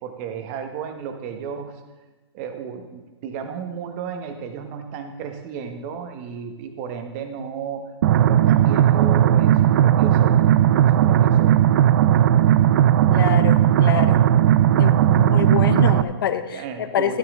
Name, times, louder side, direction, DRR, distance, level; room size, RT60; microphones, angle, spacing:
voice 1, 0.0-1.7 2.3-7.9 8.1-10.4 10.7-11.6 16.5-17.2, right 6 dB, 30° right, 6 dB, 1.3 m, -33 dB
sound 1, 8.0-16.0, right 11 dB, 50° right, 0.5 m, -16 dB
voice 2, 13.1-14.2 14.7-16.6 16.9-17.2, left 9 dB, 55° left, 11 dB, 0.9 m, -26 dB
13.0 x 12.0 x 3.7 m, 1.2 s
hypercardioid pair, 140°, 14 cm